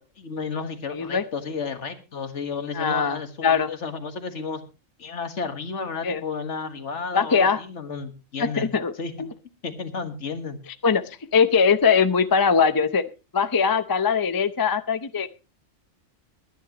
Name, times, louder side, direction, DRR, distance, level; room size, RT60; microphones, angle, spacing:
voice 1, 0.2-4.6 5.0-8.7 9.0-9.3 9.6-10.6, left 5 dB, 60° left, 9 dB, 1.8 m, -32 dB
voice 2, 0.9-1.3 2.7-3.7 6.0-6.2 7.1-7.6 8.4-8.9 9.2-9.3 10.8-11.0 11.3-13.0 13.3-15.3, left 6 dB, 25° left, 11 dB, 0.5 m, -21 dB
22.0 x 10.5 x 2.9 m, 0.29 s
omnidirectional pair, 1.4 m